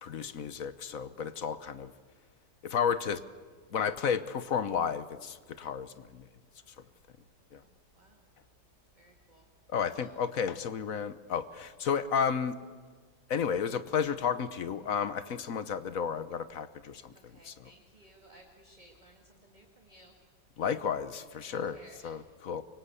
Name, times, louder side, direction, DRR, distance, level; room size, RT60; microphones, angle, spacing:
voice 1, 0.0-1.9 2.6-3.2 3.7-6.2 7.5-7.6 9.7-12.6 13.3-17.1 17.4-17.7 20.6-21.8 22.0-22.6, left 7 dB, 55° left, 13 dB, 1.2 m, -32 dB
voice 2, 7.6-8.3 8.9-9.5 9.9-10.1 17.1-20.1 21.4-22.2, right 1 dB, 25° right, 2 dB, 2.0 m, -58 dB
24.5 x 23.5 x 8.3 m, 1.5 s
omnidirectional pair, 1.9 m